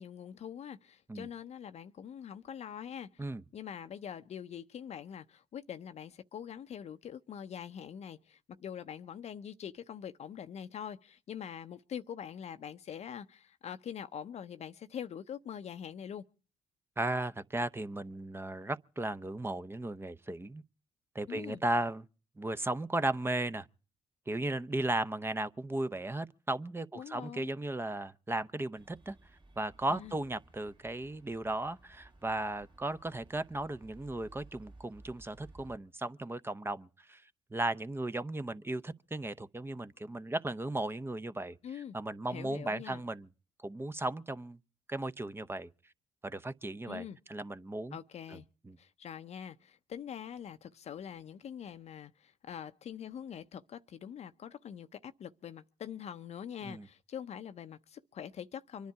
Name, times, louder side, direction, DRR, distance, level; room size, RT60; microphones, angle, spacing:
voice 1, 0.0-3.2 3.5-16.2 21.3-21.6 26.9-27.5 29.9-30.2 41.6-42.0 42.3-43.0 46.9-47.2 47.9-48.5 48.8-58.9, left 8 dB, 55° left, 0.7 m, -44 dB
voice 2, 17.0-20.6 21.1-22.1 22.4-23.7 24.3-29.1 29.6-37.2 37.5-43.3 43.6-44.6 44.9-45.7 46.2-48.0 48.3-48.4 48.6-48.8 56.6-56.9, right 2 dB, 20° right, 0.8 m, -36 dB
sound 1, 28.7-35.8, right 2 dB, 35° right, 2.1 m, -58 dB
25.0 x 10.5 x 4.7 m
hypercardioid pair, 55°, 13 cm